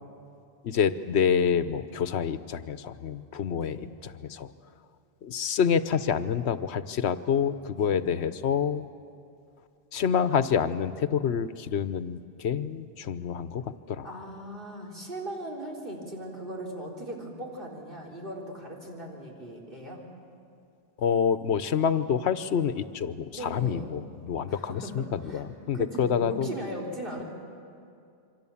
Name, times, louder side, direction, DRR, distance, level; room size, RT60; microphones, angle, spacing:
voice 1, 0.6-3.8 4.0-4.5 5.2-8.9 9.9-14.2 21.0-26.5, left 7 dB, 85° left, 12 dB, 1.1 m, -27 dB
voice 2, 14.0-20.1 23.3-24.0 24.5-27.2, right 1 dB, 55° right, -1 dB, 4.3 m, -38 dB
27.0 x 24.5 x 7.2 m, 2.4 s
omnidirectional pair, 1.1 m